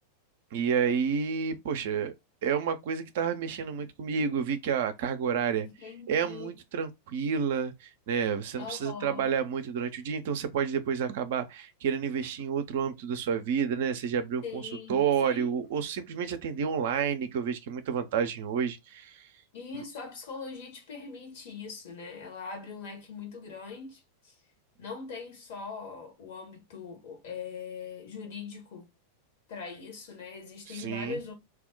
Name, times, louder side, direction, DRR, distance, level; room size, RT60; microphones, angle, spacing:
voice 1, 0.5-2.1 2.4-5.7 6.1-19.3 30.7-31.2, right 7 dB, 55° right, 0.4 m, -30 dB
voice 2, 5.6-6.6 8.6-9.4 14.4-15.6 19.5-24.3 24.8-28.9 29.5-31.3, left 5 dB, 50° left, 1.0 m, -41 dB
2.3 x 2.1 x 3.7 m
figure-of-eight pair, 90°, 0 cm